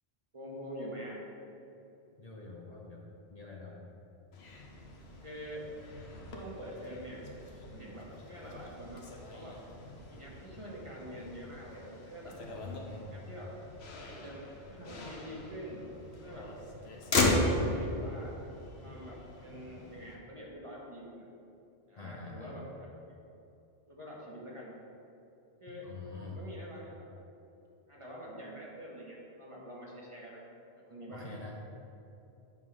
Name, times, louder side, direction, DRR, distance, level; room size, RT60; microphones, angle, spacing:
voice 1, 0.3-1.2 5.2-5.7 6.3-7.2 7.6-9.0 9.3-9.6 10.1-12.4 13.1-13.5 14.1-14.4 14.7-15.8 16.2-16.5 17.1-18.4 18.8-21.2 21.9-23.1 23.9-24.7 25.6-25.9 26.2-26.9 27.9-30.4 30.9-31.3, equal, 30° right, -4 dB, 1.4 m, -46 dB
voice 2, 2.2-3.0 3.3-3.8 12.5-13.1 22.0-22.6 25.7-26.4 31.1-31.5, left 3 dB, 40° left, -2 dB, 0.8 m, -46 dB
Motor vehicle (road), 4.3-20.2, left 2 dB, 75° left, 1.2 m, -37 dB
9.4 x 3.7 x 6.1 m, 2.9 s
omnidirectional pair, 1.1 m